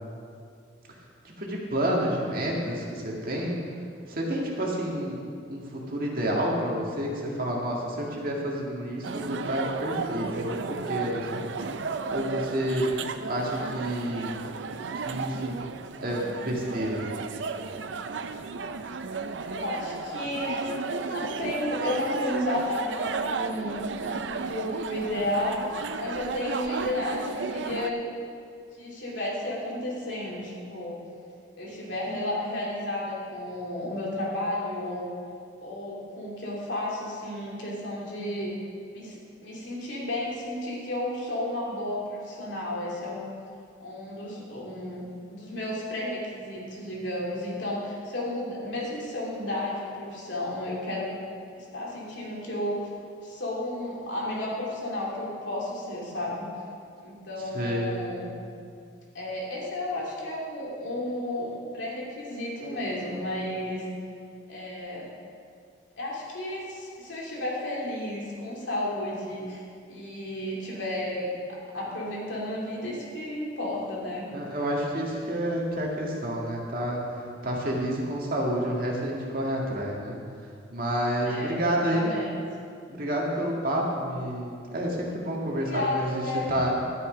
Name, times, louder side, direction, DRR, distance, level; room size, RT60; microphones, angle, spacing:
voice 1, 1.2-3.6 4.1-5.2 5.5-11.5 12.1-12.8 13.3-14.3 14.9-15.6 16.0-17.0 57.5-58.0 74.3-80.2 80.7-82.1 82.9-86.2 86.5-86.7, equal, 50° right, -2 dB, 2.0 m, -29 dB
sound 1, 9.0-27.9, right 4 dB, 70° right, 0.5 m, -34 dB
voice 2, 19.4-20.6 21.1-25.6 26.0-28.0 28.7-31.0 31.6-35.1 35.6-38.5 38.9-43.3 43.8-45.0 45.3-51.1 51.6-52.9 53.2-56.5 57.0-58.3 59.1-63.9 64.5-65.1 66.0-74.3 81.2-82.4 85.6-86.7, left 1 dB, 75° left, -4 dB, 2.8 m, -32 dB
11.5 x 9.8 x 5.1 m, 2.3 s
head